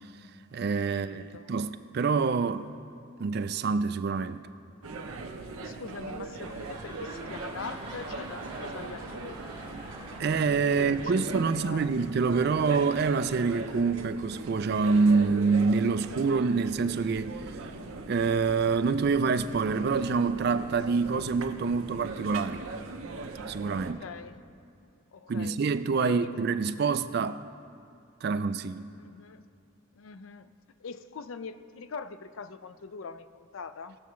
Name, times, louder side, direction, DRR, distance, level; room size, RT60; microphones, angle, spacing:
voice 1, 0.5-2.7 3.2-4.4 10.2-17.3 18.1-22.6 23.5-24.0 25.3-27.4 28.2-28.9, right 4 dB, 50° right, 0.3 m, -26 dB
voice 2, 1.0-1.5 5.6-9.9 10.6-11.9 23.8-24.4 25.1-25.6 26.0-26.4 29.0-29.4 30.0-30.5 30.8-34.0, left 5 dB, 70° left, 0.5 m, -42 dB
sound 1, 4.8-23.9, right 3 dB, 80° right, 0.7 m, -40 dB
sound 2, 6.1-12.3 13.0-13.1, right 2 dB, 20° right, 1.8 m, -46 dB
19.0 x 6.9 x 3.1 m
head